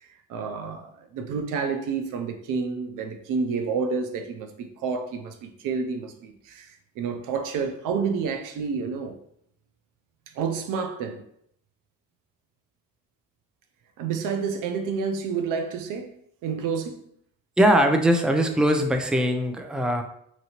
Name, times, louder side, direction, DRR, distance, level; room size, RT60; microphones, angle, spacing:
voice 1, 0.3-9.2 10.3-11.2 14.0-16.1 16.4-17.0, right 5 dB, 85° right, 0.5 m, -29 dB
voice 2, 17.6-20.0, equal, 5° right, 0.4 m, -21 dB
2.9 x 2.8 x 2.8 m
supercardioid pair, 60°, 31 cm